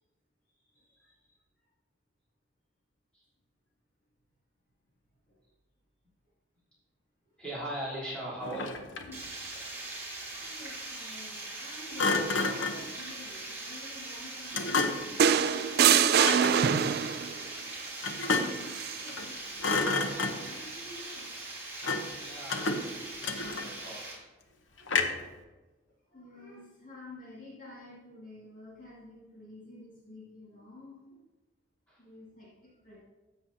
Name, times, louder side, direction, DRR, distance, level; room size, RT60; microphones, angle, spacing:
voice 1, 0.7-1.1 5.3-5.4 10.4-14.8 17.5-17.6 18.4-19.8 20.4-21.3 23.3-23.5 24.5-24.9 26.1-31.2 32.0-33.0, left 1 dB, 45° left, -6 dB, 2.1 m, -50 dB
voice 2, 7.4-8.8 22.2-24.0 31.9-32.0, right 1 dB, 5° left, -9 dB, 3.4 m, -40 dB
Thump thud, 8.4-9.2 12.0-12.9 14.5-15.2 16.1-16.6 18.0-18.7 19.1-19.3 19.6-20.6 21.8-22.2 22.5-23.9 24.9-25.3, left 3 dB, 75° left, 0.8 m, -30 dB
Water, 9.1-24.1, right 2 dB, 10° right, 2.9 m, -41 dB
sound 1, 15.2-17.3 18.7-19.0, right 8 dB, 55° right, 0.3 m, -23 dB
13.0 x 7.9 x 2.8 m, 1.2 s
head